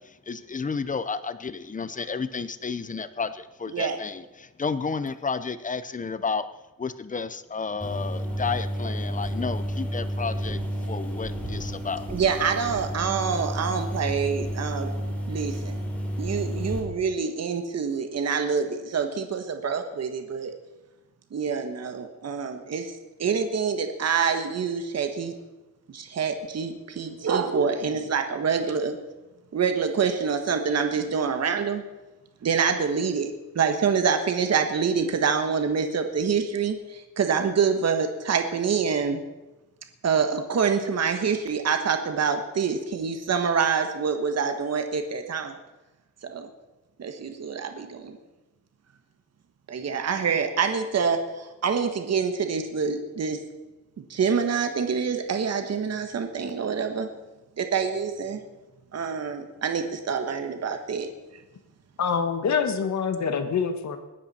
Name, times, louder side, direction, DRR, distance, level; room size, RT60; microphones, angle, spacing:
voice 1, 0.0-6.5 6.8-12.1, left 5 dB, 25° left, 13 dB, 0.7 m, -32 dB
sound 1, 7.8-16.8, equal, 5° left, 3.5 m, -31 dB
voice 2, 12.1-14.9 15.3-15.8 16.2-20.5 21.3-22.9 23.2-25.3 25.9-29.0 29.5-31.8 32.4-39.2 40.0-45.6 46.2-46.5 47.0-48.2 49.7-53.4 54.0-57.1 57.6-58.4 58.9-61.1, right 6 dB, 50° right, 6 dB, 1.5 m, -26 dB
voice 3, 62.0-64.0, left 6 dB, 55° left, 8 dB, 1.6 m, -25 dB
20.5 x 12.0 x 4.3 m, 1.0 s
wide cardioid pair, 155°, 34 cm